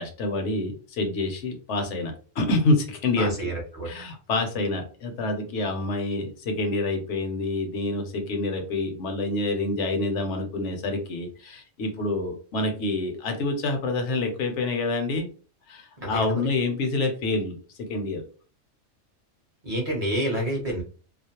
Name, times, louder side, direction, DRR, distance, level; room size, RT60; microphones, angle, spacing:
voice 1, 0.0-3.3 3.8-15.3 15.7-18.2, left 2 dB, 70° left, 5 dB, 0.9 m, -27 dB
voice 2, 3.2-3.9 16.0-16.4 19.6-20.8, equal, 40° right, -2 dB, 0.6 m, -28 dB
2.4 x 2.0 x 2.8 m, 0.39 s
omnidirectional pair, 1.3 m